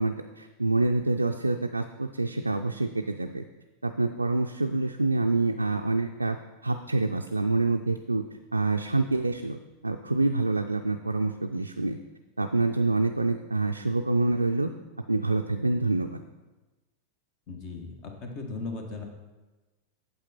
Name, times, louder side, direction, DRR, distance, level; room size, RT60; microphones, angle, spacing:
voice 1, 0.0-3.4 3.8-6.4 6.6-8.2 8.5-12.0 12.4-14.7 15.1-16.2, right 2 dB, 85° right, 4 dB, 0.3 m, -26 dB
voice 2, 17.5-19.0, left 3 dB, 40° left, 4 dB, 1.4 m, -37 dB
8.7 x 7.1 x 4.2 m, 1.1 s
figure-of-eight pair, 90°, 0 cm